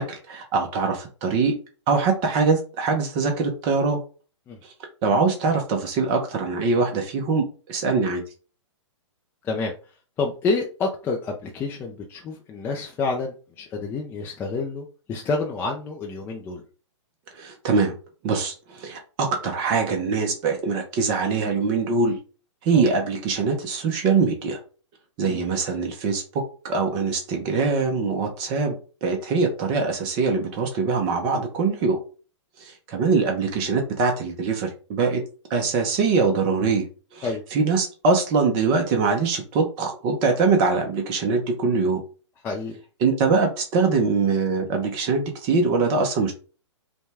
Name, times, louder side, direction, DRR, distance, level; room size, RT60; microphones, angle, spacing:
voice 1, 0.0-1.5 1.9-4.0 4.6-4.7 5.0-8.2 17.3-18.0 18.2-22.2 22.6-24.6 25.2-28.8 29.0-32.0 32.6-35.2 35.5-36.8 37.1-42.0 43.0-46.3, right 4 dB, 30° right, 3 dB, 0.7 m, -23 dB
voice 2, 9.4-9.7 10.2-16.6 22.7-22.8 25.2-25.4 37.2-37.4 42.4-42.8, left 3 dB, 15° left, 1 dB, 0.4 m, -28 dB
5.2 x 2.3 x 3.4 m, 0.36 s
hypercardioid pair, 145°, 16 cm